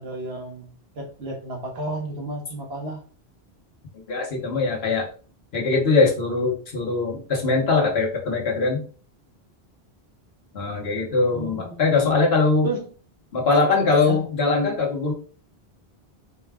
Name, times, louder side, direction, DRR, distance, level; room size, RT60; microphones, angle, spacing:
voice 1, 0.0-3.0 11.3-12.2 12.6-12.9 14.0-14.2, right 2 dB, 75° right, 1 dB, 1.4 m, -32 dB
voice 2, 4.1-5.1 5.5-8.8 10.5-12.7 13.3-15.1, left 3 dB, 75° left, 0 dB, 1.3 m, -21 dB
4.4 x 2.2 x 3.5 m, 0.38 s
omnidirectional pair, 1.1 m